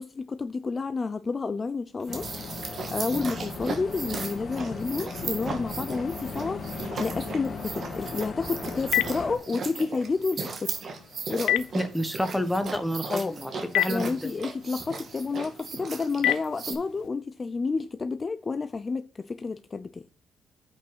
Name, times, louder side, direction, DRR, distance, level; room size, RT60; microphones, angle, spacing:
voice 1, 0.0-2.3 2.9-10.8 11.3-11.7 13.1-13.4 13.9-20.0, left 4 dB, 30° left, 0.5 m, -30 dB
sound 1, 2.0-16.7, right 4 dB, 50° right, 2.0 m, -37 dB
sound 2, 2.1-9.4, left 4 dB, 50° left, 2.3 m, -37 dB
Telephone, 8.2-17.1, left 13 dB, 85° left, 0.5 m, -33 dB
voice 2, 11.7-14.3, equal, 5° left, 1.3 m, -29 dB
8.3 x 5.3 x 5.6 m
cardioid pair, 90°, 0 cm